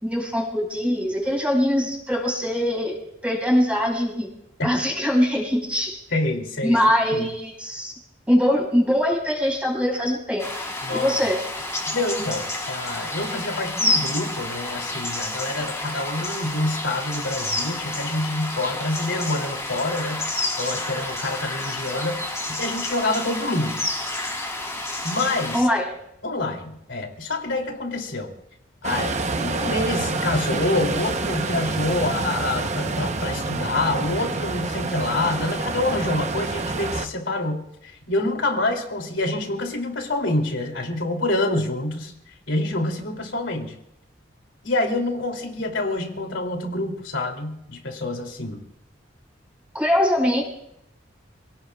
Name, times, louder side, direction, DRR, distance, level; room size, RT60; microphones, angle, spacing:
voice 1, 0.0-3.0 3.2-4.3 4.6-6.0 6.6-7.9 8.3-10.5 10.9-11.4 25.5-25.9 49.7-50.4, equal, 5° right, 0 dB, 5.0 m, -22 dB
voice 2, 6.1-6.8 7.1-7.3 10.8-11.2 11.9-20.3 20.6-22.2 22.5-23.8 25.0-25.7 26.2-28.3 28.8-42.1 42.5-43.8 44.6-48.6, left 2 dB, 80° left, 2 dB, 2.9 m, -27 dB
sound 1, 10.4-25.6, left 2 dB, 15° left, 3.0 m, -29 dB
sound 2, 28.8-37.1, right 3 dB, 40° right, 0.9 m, -27 dB
28.0 x 18.0 x 2.4 m, 0.78 s
head